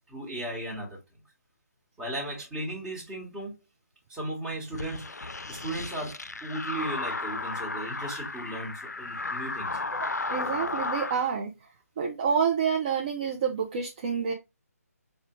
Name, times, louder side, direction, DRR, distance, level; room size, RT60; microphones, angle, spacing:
voice 1, 0.1-1.0 2.0-3.5 4.1-5.1 5.5-9.7, right 1 dB, 10° right, 1.2 m, -36 dB
sound 1, 4.7-11.2, left 3 dB, 85° left, 0.3 m, -34 dB
voice 2, 9.9-14.3, right 6 dB, 30° right, 0.5 m, -29 dB
4.7 x 2.2 x 2.9 m
figure-of-eight pair, 145°, 9 cm